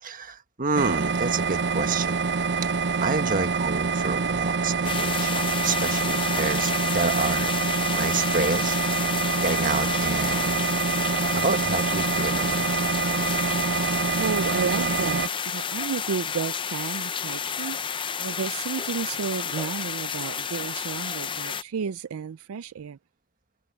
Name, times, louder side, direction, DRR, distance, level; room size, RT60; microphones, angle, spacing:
voice 1, 0.0-2.2 3.0-7.5 7.9-8.8 9.4-10.7 11.3-12.7, right 4 dB, 40° right, 1.5 m, -29 dB
sound 1, 0.7-15.3, right 5 dB, 55° right, 0.8 m, -26 dB
sound 2, 4.8-21.6, left 7 dB, 25° left, 0.5 m, -30 dB
voice 2, 14.2-23.0, right 6 dB, 75° right, 0.4 m, -32 dB
head